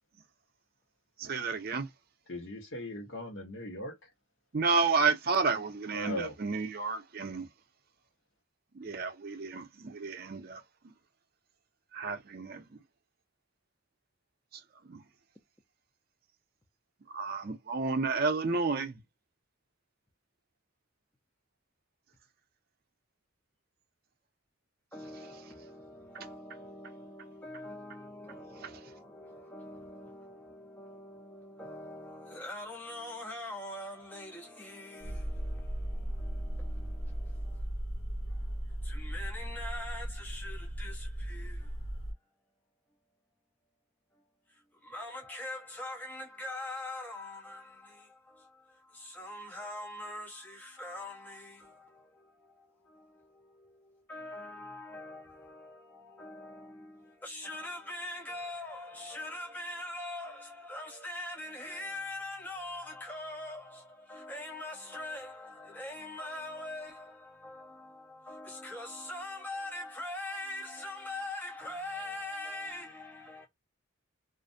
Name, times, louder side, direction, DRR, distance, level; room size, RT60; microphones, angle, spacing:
voice 1, 1.2-1.9 4.5-7.5 8.7-10.6 11.9-12.8 14.5-14.6 14.9-15.0 17.1-19.0 28.6-28.9, right 4 dB, 45° right, 0.5 m, -31 dB
voice 2, 2.3-4.1 5.9-6.4, left 1 dB, 60° left, 0.9 m, -39 dB
voice 3, 24.9-37.7 38.3-41.8 44.5-73.5, left 1 dB, 10° left, 0.4 m, -43 dB
sound 1, 35.0-42.1, right 1 dB, 85° left, 0.7 m, -37 dB
2.4 x 2.1 x 2.5 m
head